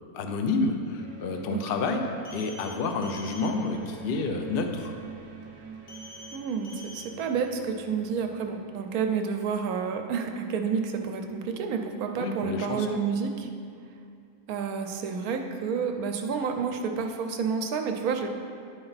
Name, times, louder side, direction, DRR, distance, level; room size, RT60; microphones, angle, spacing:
voice 1, 0.0-4.9 12.2-13.0, left 3 dB, 65° left, 5 dB, 0.6 m, -29 dB
sound 1, 1.0-12.3, right 6 dB, 60° right, 1.0 m, -47 dB
sound 2, 2.2-2.7 3.0-3.5 5.9-6.4 6.6-7.1, left 2 dB, 80° left, 1.7 m, -45 dB
voice 2, 6.3-13.5 14.5-18.3, right 6 dB, 85° right, 5 dB, 1.1 m, -30 dB
11.0 x 4.3 x 4.0 m, 2.3 s
omnidirectional pair, 1.5 m